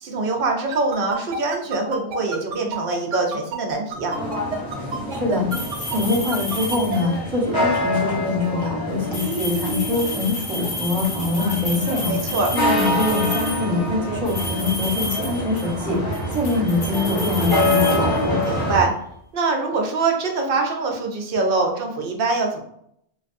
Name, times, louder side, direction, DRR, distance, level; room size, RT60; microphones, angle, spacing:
voice 1, 0.0-4.2 12.1-12.5 18.4-18.9 19.3-22.6, right 3 dB, 55° right, 2 dB, 0.8 m, -23 dB
sound 1, 0.7-7.0, right 5 dB, 90° right, 1.0 m, -29 dB
sound 2, 4.1-18.8, left 1 dB, 25° left, 0.7 m, -26 dB
voice 2, 5.1-5.6 5.9-18.4, left 3 dB, 20° right, -4 dB, 1.1 m, -24 dB
sound 3, 5.5-7.3 9.0-13.7 14.3-15.8 16.1-18.6, left 2 dB, 45° left, 1.3 m, -31 dB
3.3 x 2.5 x 2.5 m, 0.71 s
omnidirectional pair, 1.2 m